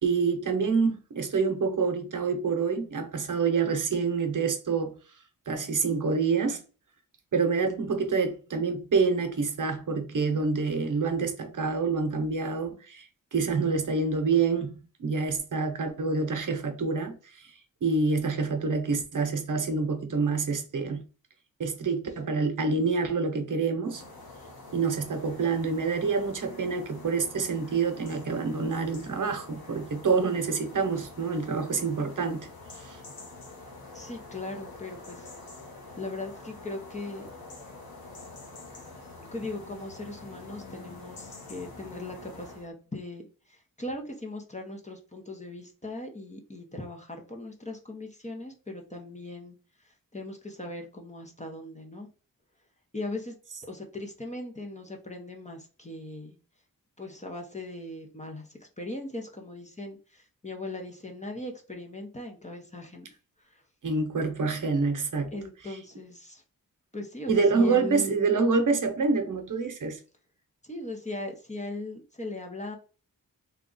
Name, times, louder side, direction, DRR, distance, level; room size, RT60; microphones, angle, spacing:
voice 1, 0.0-5.0 5.5-6.6 7.3-17.5 17.8-21.1 21.6-24.0 24.7-32.5 32.7-33.0 63.8-65.3 67.3-70.0, right 4 dB, 60° right, 0.8 m, -27 dB
sound 1, 23.8-42.7, left 3 dB, 90° left, 1.0 m, -46 dB
voice 2, 33.9-35.3 36.0-37.3 39.3-49.6 49.8-52.1 52.9-53.3 53.6-56.4 57.0-63.1 63.4-63.6 65.3-66.4 66.9-68.3 70.6-72.8, left 2 dB, 20° left, 0.7 m, -39 dB
3.5 x 2.3 x 3.8 m
wide cardioid pair, 175°, 35 cm